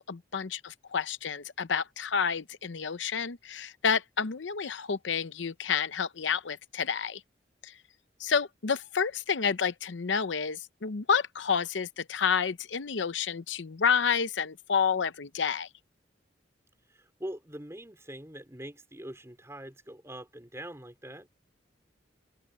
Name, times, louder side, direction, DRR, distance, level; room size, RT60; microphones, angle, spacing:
voice 1, 0.0-7.2 7.6-7.7 8.2-15.7, left 6 dB, 85° left, 0.7 m, -29 dB
voice 2, 16.9-21.3, right 1 dB, 15° right, 4.3 m, -43 dB
head